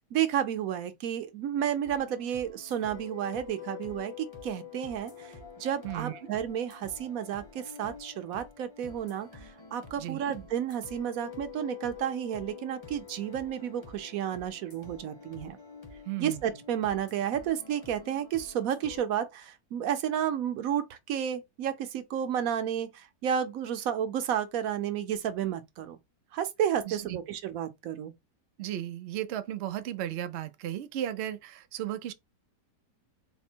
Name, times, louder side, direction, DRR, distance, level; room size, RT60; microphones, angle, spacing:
voice 1, 0.1-15.6 16.2-26.0 26.3-28.1, right 9 dB, 65° right, 1.0 m, -32 dB
sound 1, 1.9-19.0, left 6 dB, 25° left, 0.7 m, -47 dB
voice 2, 5.8-6.2 10.0-10.3 16.1-16.4 26.8-27.2 28.6-32.1, right 12 dB, 90° right, 0.5 m, -35 dB
4.2 x 2.1 x 4.3 m
omnidirectional pair, 1.8 m